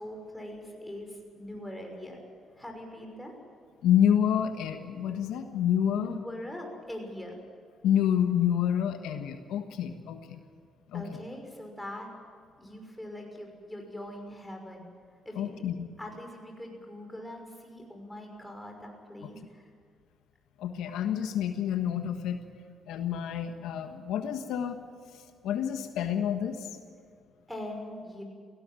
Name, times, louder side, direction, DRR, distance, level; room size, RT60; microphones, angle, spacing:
voice 1, 0.0-2.2 2.6-3.3 5.9-7.4 10.9-12.1 12.6-14.9 15.2-15.5 16.0-19.7 27.5-28.2, left 1 dB, 5° left, 2 dB, 5.9 m, -42 dB
voice 2, 3.8-6.2 7.8-10.4 10.9-11.1 15.3-15.9 20.6-22.4 22.9-24.8 25.1-26.7, left 9 dB, 90° left, 7 dB, 1.4 m, -28 dB
18.0 x 17.0 x 9.1 m, 2.2 s
cardioid pair, 90°, 0 cm